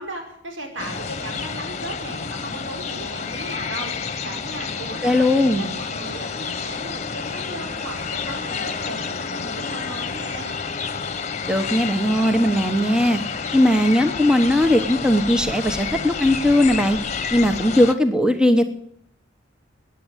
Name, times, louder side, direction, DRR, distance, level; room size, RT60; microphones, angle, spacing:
voice 1, 0.0-10.6, right 1 dB, 80° right, 3 dB, 4.8 m, -36 dB
sound 1, 0.8-17.9, left 5 dB, 40° left, 1.2 m, -29 dB
voice 2, 5.0-5.7 11.4-13.2 13.5-17.0 17.3-18.6, left 1 dB, 5° right, 8 dB, 1.0 m, -18 dB
14.0 x 10.0 x 9.8 m, 0.69 s
head